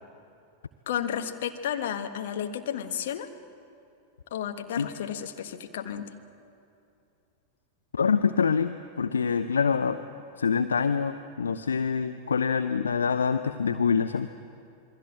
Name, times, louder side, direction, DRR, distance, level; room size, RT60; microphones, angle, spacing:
voice 1, 0.9-3.3 4.3-6.1, left 9 dB, 55° left, 6 dB, 1.6 m, -32 dB
voice 2, 7.9-10.0 10.4-14.3, left 6 dB, 70° left, 10 dB, 0.7 m, -25 dB
27.5 x 22.5 x 7.6 m, 2.6 s
figure-of-eight pair, 90°, 0 cm